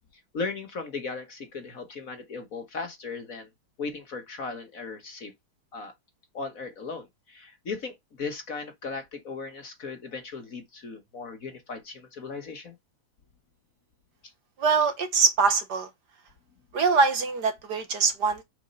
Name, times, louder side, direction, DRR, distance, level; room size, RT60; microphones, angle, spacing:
voice 1, 0.3-3.5 3.8-5.3 5.7-5.9 6.3-12.7, left 4 dB, 45° left, 1.6 m, -37 dB
voice 2, 14.6-15.9 16.7-18.4, right 4 dB, 55° right, 1.6 m, -23 dB
6.2 x 5.2 x 5.4 m
omnidirectional pair, 2.3 m